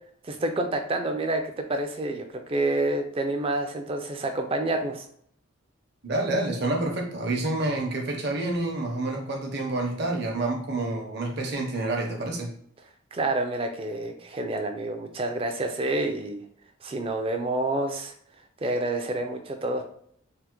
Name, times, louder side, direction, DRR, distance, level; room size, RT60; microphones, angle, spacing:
voice 1, 0.2-5.1 13.1-16.4 16.8-18.1 18.6-19.8, right 2 dB, 25° right, 5 dB, 0.3 m, -28 dB
voice 2, 6.0-12.5, right 2 dB, 55° right, 1 dB, 0.7 m, -28 dB
3.4 x 2.1 x 2.9 m, 0.66 s
head